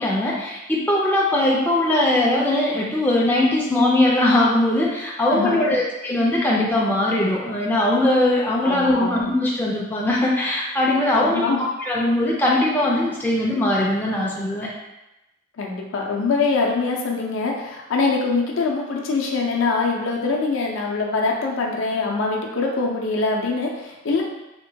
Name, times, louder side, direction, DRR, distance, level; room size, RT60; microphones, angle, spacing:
voice 1, 0.0-14.7, left 1 dB, 10° left, -4 dB, 0.3 m, -20 dB
voice 2, 5.3-5.6 8.6-9.2 11.1-11.6 15.6-24.2, left 4 dB, 70° left, -1 dB, 0.5 m, -23 dB
2.9 x 2.2 x 2.7 m, 0.97 s
head